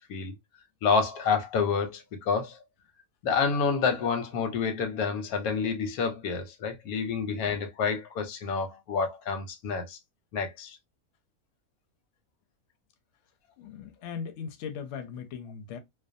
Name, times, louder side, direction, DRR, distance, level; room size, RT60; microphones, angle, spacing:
voice 1, 0.8-2.6 3.2-10.0 10.3-10.8, left 5 dB, 90° left, 1.1 m, -28 dB
voice 2, 13.6-15.8, left 7 dB, 65° left, 0.8 m, -38 dB
2.5 x 2.1 x 2.5 m
omnidirectional pair, 1.5 m